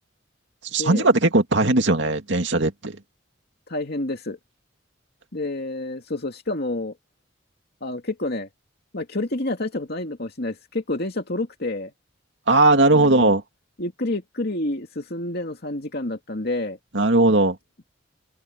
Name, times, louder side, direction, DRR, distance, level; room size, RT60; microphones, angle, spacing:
voice 1, 0.7-3.0 12.5-13.4 16.9-17.6, right 2 dB, 70° right, 2.4 m, -18 dB
voice 2, 3.7-4.4 5.3-6.9 7.8-8.5 8.9-11.9 12.9-13.3 13.8-16.8, left 2 dB, 55° left, 2.5 m, -29 dB
open air
head